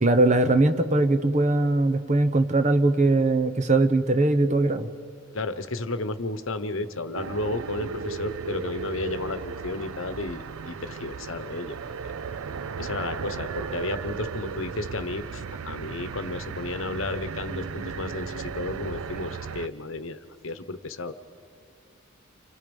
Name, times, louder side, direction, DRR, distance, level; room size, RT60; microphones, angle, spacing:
voice 1, 0.0-4.9, right 2 dB, 35° right, 9 dB, 0.9 m, -21 dB
voice 2, 5.3-11.8 12.0-12.1 12.8-21.1, left 2 dB, 65° left, 11 dB, 1.1 m, -33 dB
sound 1, 7.1-19.7, right 5 dB, 80° right, 0.5 m, -35 dB
29.5 x 26.5 x 5.4 m, 2.3 s
head